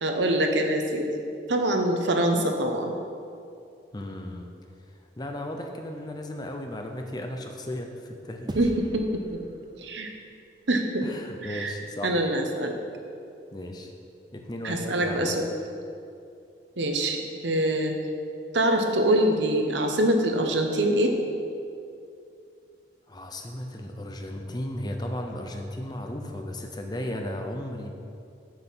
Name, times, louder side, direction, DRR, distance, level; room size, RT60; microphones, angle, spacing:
voice 1, 0.0-1.1 1.5-2.9 8.5-9.2 9.8-10.1 10.7-11.1 11.4-11.7 12.0-12.7 14.6-15.5 16.8-17.9 18.5-21.1, right 1 dB, 80° right, 4 dB, 1.0 m, -24 dB
voice 2, 3.9-4.5 5.2-8.6 11.0-12.2 13.5-13.9 14.3-15.5 23.1-27.9, left 1 dB, 20° left, 3 dB, 0.7 m, -35 dB
sound 1, 8.5-11.1, right 1 dB, 25° right, 0.5 m, -41 dB
8.0 x 7.5 x 5.8 m, 2.5 s
head